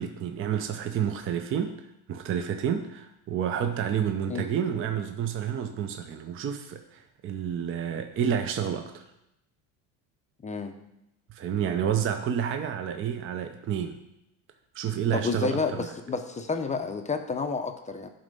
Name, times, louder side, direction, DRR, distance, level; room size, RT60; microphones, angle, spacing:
voice 1, 0.0-1.8 2.1-9.0 11.3-14.0 14.7-15.9, right 8 dB, 30° right, 7 dB, 0.5 m, -29 dB
voice 2, 15.1-18.1, left 4 dB, 15° left, 5 dB, 0.5 m, -30 dB
11.5 x 4.2 x 5.3 m, 0.85 s
cardioid pair, 135°, 42 cm